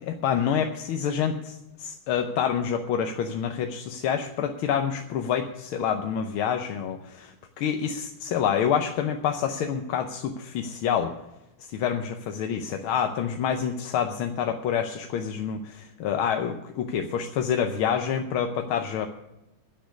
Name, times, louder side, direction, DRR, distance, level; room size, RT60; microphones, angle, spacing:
voice 1, 0.0-11.1 11.7-19.1, left 8 dB, 85° left, 5 dB, 1.7 m, -27 dB
10.0 x 8.6 x 9.5 m, 0.94 s
omnidirectional pair, 2.3 m